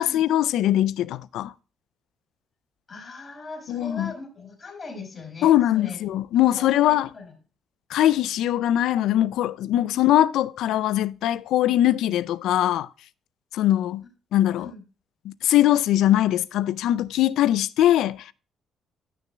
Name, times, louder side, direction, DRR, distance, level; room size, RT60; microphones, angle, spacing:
voice 1, 0.0-1.5 3.7-4.1 5.4-7.1 7.9-12.9 13.5-14.0 14.3-14.7 15.2-18.3, left 12 dB, 85° left, 0.4 m, -21 dB
voice 2, 2.9-6.0 6.3-7.3 9.9-10.0 14.6-14.8, left 3 dB, 40° left, 5.1 m, -40 dB
15.0 x 6.8 x 2.2 m
cardioid pair, 90°, 0 cm